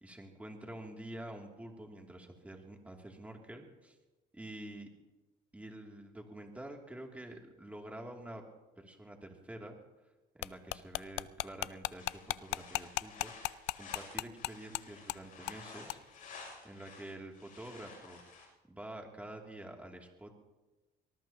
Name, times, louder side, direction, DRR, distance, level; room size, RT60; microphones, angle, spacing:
voice 1, 0.0-4.0 4.3-4.9 5.5-8.4 8.8-9.8 10.3-16.0 16.6-18.2 18.7-20.3, right 1 dB, 10° right, 1 dB, 2.7 m, -48 dB
sound 1, 10.4-14.8 15.1-15.2 15.5-15.6 15.9-16.0, left 18 dB, 80° left, 0.4 m, -35 dB
sound 2, 12.0-18.5, left 4 dB, 50° left, 6.7 m, -52 dB
25.0 x 19.5 x 2.9 m, 1.1 s
cardioid pair, 110°, 17 cm